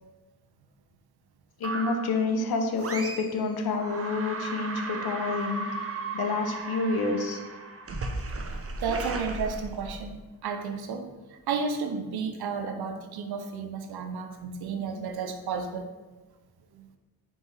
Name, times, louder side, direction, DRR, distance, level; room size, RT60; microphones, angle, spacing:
voice 1, 1.6-5.7 6.1-7.4, left 3 dB, 80° left, 4 dB, 0.7 m, -28 dB
sound 1, 1.6-2.2 2.8-3.4 3.7-10.2, right 3 dB, 40° right, 0.6 m, -35 dB
voice 2, 8.8-10.1 10.4-11.1 11.5-15.9, right 5 dB, 90° right, 6 dB, 0.5 m, -32 dB
4.0 x 3.6 x 3.2 m, 1.2 s
cardioid pair, 50°, 37 cm